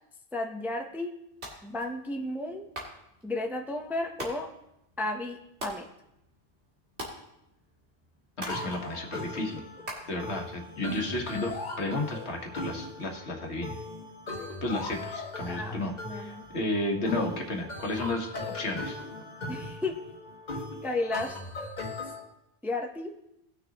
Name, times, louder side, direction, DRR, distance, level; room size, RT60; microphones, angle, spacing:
voice 1, 0.3-1.1 1.6-2.7 3.2-4.5 5.0-5.9 15.4-15.8 16.0-16.4 19.5-20.0 20.8-21.4 22.6-23.1, left 2 dB, ahead, 3 dB, 0.7 m, -33 dB
sound 1, 1.3-11.0, right 1 dB, 75° right, 2.4 m, -46 dB
voice 2, 8.4-9.6 10.1-13.8 14.6-18.3 18.5-19.0, left 2 dB, 75° left, 2 dB, 1.7 m, -32 dB
sound 2, 8.5-22.2, left 2 dB, 40° left, 1.7 m, -39 dB
19.0 x 6.4 x 2.9 m, 0.83 s
omnidirectional pair, 1.1 m